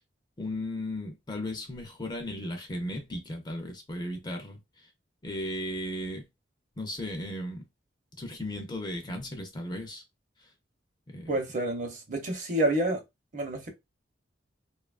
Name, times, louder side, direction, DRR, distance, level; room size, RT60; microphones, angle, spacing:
voice 1, 0.4-4.9 5.2-6.2 6.8-7.6 8.2-10.0 11.1-11.3, left 1 dB, 25° left, 0.5 m, -36 dB
voice 2, 11.3-13.0 13.3-13.7, right 1 dB, 45° right, 0.7 m, -28 dB
2.7 x 2.3 x 2.3 m
head